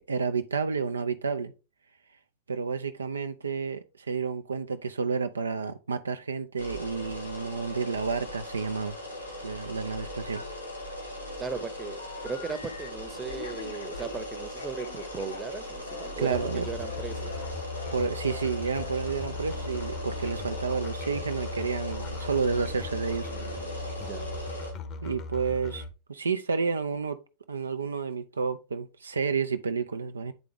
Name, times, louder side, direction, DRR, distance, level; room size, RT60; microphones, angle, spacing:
voice 1, 0.1-1.5 2.5-9.0 9.4-10.4 16.2-16.7 17.9-23.3 25.0-25.8 26.1-27.2 27.5-30.3, right 5 dB, 75° right, 0.4 m, -30 dB
sound 1, 6.6-24.7, equal, 85° left, 3.0 m, -39 dB
Telephone, 10.3-10.9 11.3-12.9 13.3-16.1 16.3-16.6 16.8-17.0 17.3-17.5 17.8-18.0 18.2-18.5 18.7-18.9, left 6 dB, 65° left, 0.8 m, -44 dB
voice 2, 11.4-17.4 24.0-24.3, right 4 dB, 15° right, 0.8 m, -37 dB
Musical instrument, 16.3-25.9, left 3 dB, 35° left, 0.8 m, -38 dB
9.1 x 3.7 x 3.5 m
figure-of-eight pair, 90°, 0 cm